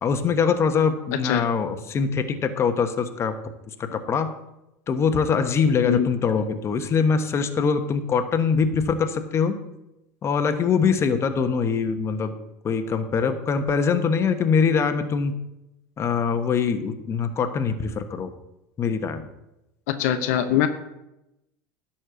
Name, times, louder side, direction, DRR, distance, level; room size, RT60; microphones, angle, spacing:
voice 1, 0.0-3.3 3.8-4.3 4.9-9.6 10.2-12.3 12.6-15.4 16.0-18.3 18.8-19.2, left 5 dB, 35° left, 8 dB, 1.1 m, -23 dB
voice 2, 20.0-20.7, left 10 dB, 75° left, 8 dB, 0.9 m, -22 dB
11.0 x 4.4 x 8.0 m, 0.89 s
supercardioid pair, 105°, 8 cm